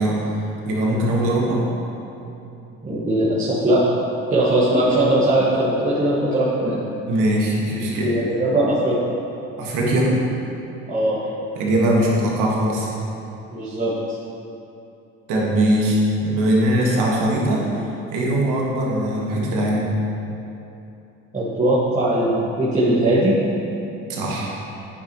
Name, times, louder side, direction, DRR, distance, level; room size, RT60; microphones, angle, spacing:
voice 1, 0.0-1.6 7.1-8.1 9.6-10.2 11.6-12.9 15.3-19.9 24.1-24.6, right 1 dB, 70° right, -3 dB, 1.7 m, -21 dB
voice 2, 2.8-3.8 4.3-6.8 8.0-9.0 10.9-11.2 13.5-13.9 21.3-23.4, right 1 dB, 20° right, -10 dB, 1.6 m, -20 dB
9.2 x 5.5 x 3.0 m, 2.8 s
supercardioid pair, 75°, 33 cm